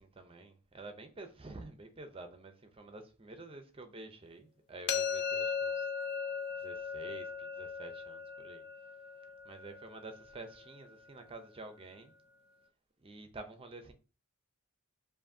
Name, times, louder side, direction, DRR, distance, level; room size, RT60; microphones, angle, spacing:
voice 1, 0.0-5.9 6.5-8.6 9.4-12.1 13.0-13.9, right 2 dB, 25° right, 0.6 m, -49 dB
sound 1, 4.9-10.7, left 6 dB, 50° left, 0.5 m, -38 dB
7.4 x 2.6 x 2.7 m
head